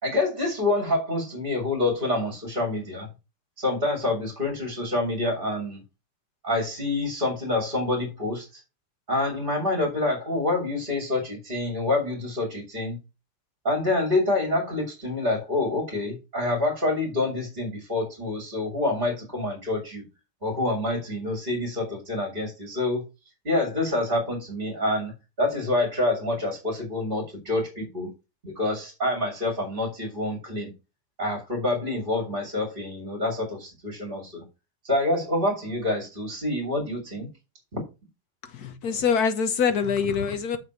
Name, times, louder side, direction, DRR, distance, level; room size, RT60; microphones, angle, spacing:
voice 1, 0.0-3.1 3.6-5.8 6.4-8.5 9.1-13.0 13.6-20.0 20.4-23.0 23.4-25.1 25.4-28.1 28.4-30.7 31.2-34.4 34.8-37.3, left 2 dB, 30° right, 2.9 m, -27 dB
voice 2, 38.5-40.6, left 6 dB, 65° left, 1.5 m, -24 dB
7.4 x 6.2 x 4.5 m
omnidirectional pair, 1.8 m